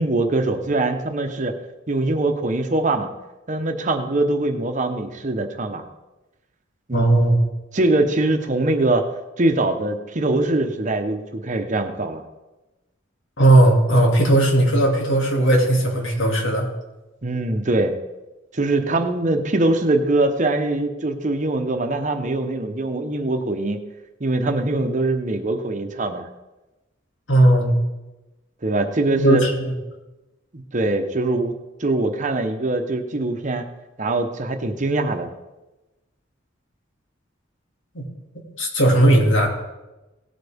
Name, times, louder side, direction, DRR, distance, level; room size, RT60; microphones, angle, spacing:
voice 1, 0.0-1.5 1.9-3.1 3.5-5.8 6.9-7.1 7.7-9.1 9.4-12.2 17.2-17.9 18.5-23.8 24.2-26.3 28.6-29.4 30.5-31.5 31.8-33.7 34.0-35.3, right 2 dB, 40° right, 6 dB, 1.0 m, -22 dB
voice 2, 6.9-7.4 13.4-16.7 27.3-27.7 29.2-29.7 37.9-38.0 38.6-39.5, right 1 dB, 80° left, 0 dB, 2.5 m, -17 dB
17.5 x 8.2 x 3.6 m, 1.1 s
head